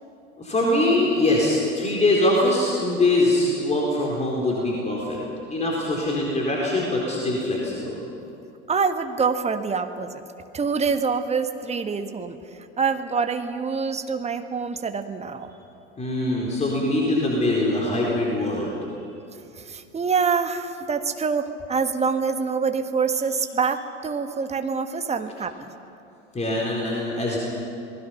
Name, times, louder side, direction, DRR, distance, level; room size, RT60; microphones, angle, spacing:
voice 1, 0.4-5.2 5.5-8.0 16.0-18.8 26.3-27.4, left 1 dB, 20° left, -3 dB, 4.3 m, -23 dB
voice 2, 8.7-10.2 10.5-15.5 19.6-25.5, right 5 dB, 15° right, 7 dB, 1.4 m, -25 dB
28.0 x 20.0 x 5.9 m, 2.8 s
figure-of-eight pair, 75°, 36 cm